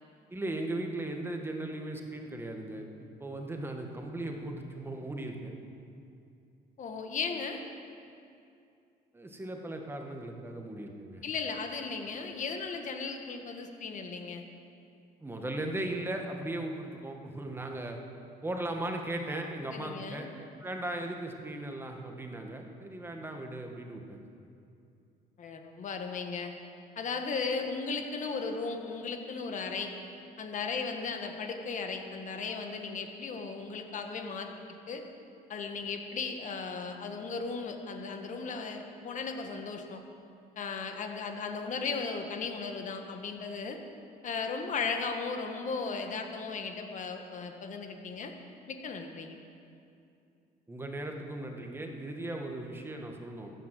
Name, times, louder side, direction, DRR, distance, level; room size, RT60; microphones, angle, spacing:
voice 1, 0.3-5.5 9.1-11.2 15.2-18.0 18.4-24.2 50.7-53.5, right 1 dB, 15° right, 3 dB, 1.7 m, -37 dB
voice 2, 6.8-7.6 11.2-14.4 19.7-20.3 25.4-26.5 26.9-29.9 30.4-34.5 34.9-35.0 35.5-40.0 40.5-43.8 44.2-48.3 48.7-49.3, left 4 dB, 50° left, 5 dB, 1.6 m, -36 dB
14.5 x 9.6 x 7.7 m, 2.6 s
cardioid pair, 110°, 17 cm